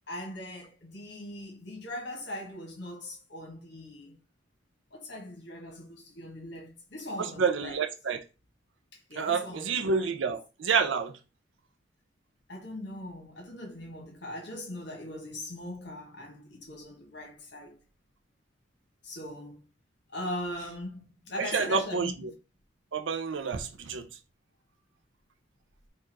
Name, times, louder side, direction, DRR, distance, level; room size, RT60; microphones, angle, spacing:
voice 1, 0.1-4.2 4.9-7.8 8.9-10.2 12.5-17.7 19.0-19.6 20.1-22.1, left 1 dB, 65° left, 1.4 m, -40 dB
voice 2, 7.2-8.2 9.2-11.1 21.4-22.1 22.9-24.1, right 5 dB, 80° right, 0.5 m, -28 dB
4.6 x 2.4 x 4.5 m
head